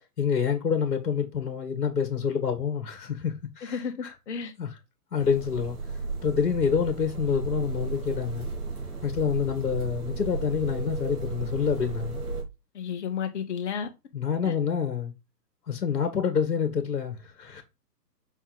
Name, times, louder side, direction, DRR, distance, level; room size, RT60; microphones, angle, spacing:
voice 1, 0.2-4.1 4.6-4.7 5.1-5.8 6.2-8.5 9.0-12.2 14.1-15.1 15.7-17.6, left 7 dB, 65° left, 1.7 m, -27 dB
voice 2, 3.6-3.9 4.3-4.5 12.7-13.9 14.4-14.5, left 7 dB, 45° left, 1.6 m, -32 dB
sound 1, 5.2-12.4, right 4 dB, 60° right, 2.7 m, -34 dB
5.7 x 4.5 x 4.0 m
figure-of-eight pair, 130°, 49 cm